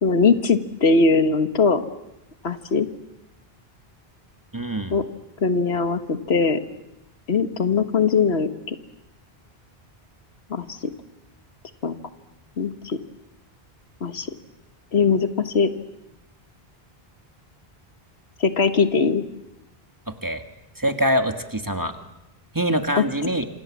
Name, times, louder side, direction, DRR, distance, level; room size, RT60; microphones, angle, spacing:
voice 1, 0.0-1.8 2.4-2.9 4.9-5.0 5.4-6.6 7.3-8.8 10.5-10.9 11.8-11.9 12.6-13.0 14.0-14.3 14.9-15.7 18.4-19.2 23.0-23.1, left 4 dB, 90° left, 9 dB, 1.7 m, -20 dB
voice 2, 4.5-5.0 20.1-20.4 20.8-22.0 22.5-23.4, equal, 20° right, 7 dB, 1.7 m, -24 dB
27.5 x 26.5 x 7.3 m, 0.91 s
omnidirectional pair, 1.0 m